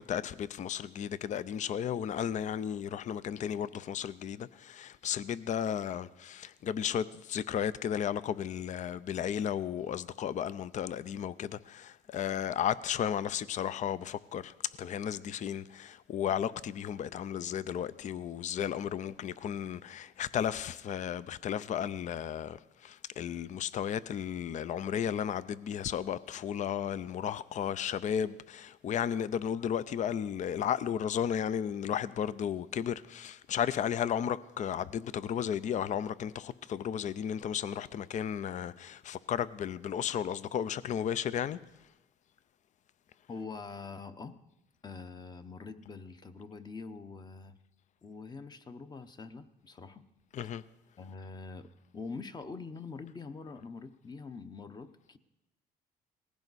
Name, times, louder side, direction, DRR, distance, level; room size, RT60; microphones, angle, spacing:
voice 1, 0.0-41.6 50.3-50.6, left 9 dB, 45° left, 0.5 m, -34 dB
voice 2, 43.3-44.4 44.8-47.6 48.0-50.1 51.0-55.2, left 4 dB, 25° left, 0.8 m, -44 dB
19.0 x 15.5 x 4.1 m
cardioid pair, 110°, 17 cm